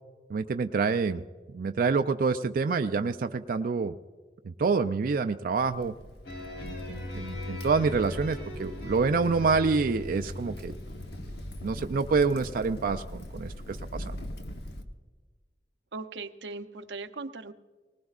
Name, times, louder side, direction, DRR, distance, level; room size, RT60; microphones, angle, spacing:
voice 1, 0.3-1.2 1.5-3.9 4.4-5.9 6.6-10.7 11.6-14.2, right 4 dB, 55° right, 7 dB, 0.4 m, -27 dB
Crackle, 5.6-14.8, left 1 dB, 65° left, 1.0 m, -41 dB
sound 1, 6.2-12.5, left 2 dB, 85° left, 3.9 m, -40 dB
voice 2, 15.9-17.5, right 3 dB, 90° right, 10 dB, 0.7 m, -39 dB
20.0 x 19.5 x 2.4 m, 1.4 s
head